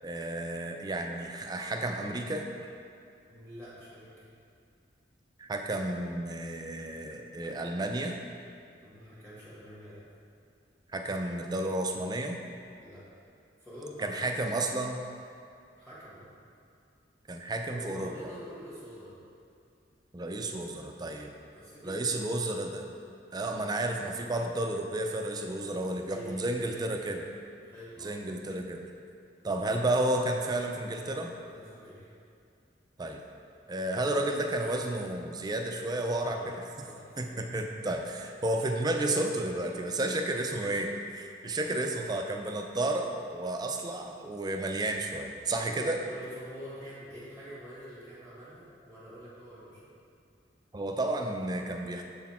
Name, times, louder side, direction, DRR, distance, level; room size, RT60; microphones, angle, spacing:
voice 1, 0.0-2.5 5.4-8.1 10.9-12.4 14.0-15.0 17.3-18.1 20.1-21.3 21.8-22.8 23.3-27.2 28.0-28.8 29.4-31.3 33.0-33.2 33.7-36.5 37.2-46.0 50.7-52.0, right 1 dB, 20° right, 3 dB, 0.4 m, -32 dB
voice 2, 3.3-4.3 8.8-10.0 12.8-13.0 13.6-14.2 15.8-16.3 17.7-19.2 21.5-22.2 25.8-26.9 27.5-28.3 31.4-32.1 36.2-36.6 36.8-37.3 45.6-49.9, equal, 10° left, -10 dB, 1.5 m, -46 dB
6.8 x 4.1 x 4.3 m, 2.4 s
head